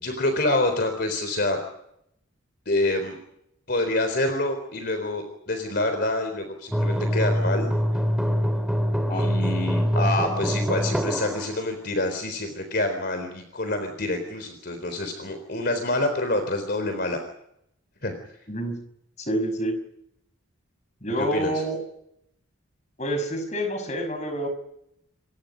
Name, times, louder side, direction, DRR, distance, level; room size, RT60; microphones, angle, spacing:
voice 1, 0.0-1.6 2.7-3.2 3.7-7.7 9.1-17.2 18.0-18.1 21.2-21.5, left 2 dB, 50° left, 7 dB, 3.9 m, -27 dB
sound 1, 6.7-11.5, equal, ahead, 2.1 m, -24 dB
voice 2, 19.2-19.7 21.0-21.8 23.0-24.5, equal, 35° left, 7 dB, 5.6 m, -28 dB
29.0 x 24.5 x 5.3 m, 0.78 s
head